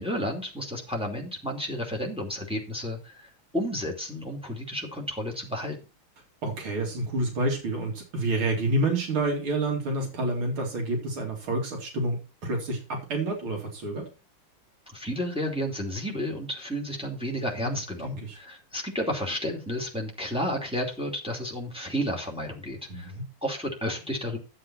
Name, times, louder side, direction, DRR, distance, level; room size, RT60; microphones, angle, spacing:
voice 1, 0.0-5.8 14.9-23.1 23.4-24.4, equal, 5° right, 0 dB, 2.6 m, -32 dB
voice 2, 6.4-14.1 17.6-18.4 22.9-23.2, right 2 dB, 85° right, 1 dB, 3.3 m, -29 dB
11.5 x 7.6 x 4.3 m, 0.31 s
omnidirectional pair, 2.2 m